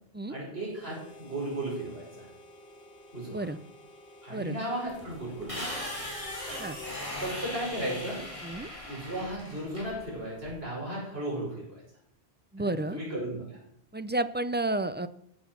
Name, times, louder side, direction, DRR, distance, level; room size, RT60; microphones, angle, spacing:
voice 1, 0.3-2.3 3.1-3.5 4.2-6.1 7.2-8.3 8.8-11.8 12.6-13.6, right 1 dB, 70° right, -4 dB, 6.2 m, -35 dB
Harmonica, 0.7-7.1, left 2 dB, 65° left, 2.1 m, -50 dB
sound 1, 4.9-10.6, left 1 dB, 30° left, 5.0 m, -39 dB
voice 2, 12.5-13.0 13.9-15.1, right 2 dB, 15° right, 12 dB, 0.4 m, -31 dB
15.0 x 9.4 x 6.0 m, 0.72 s
omnidirectional pair, 1.1 m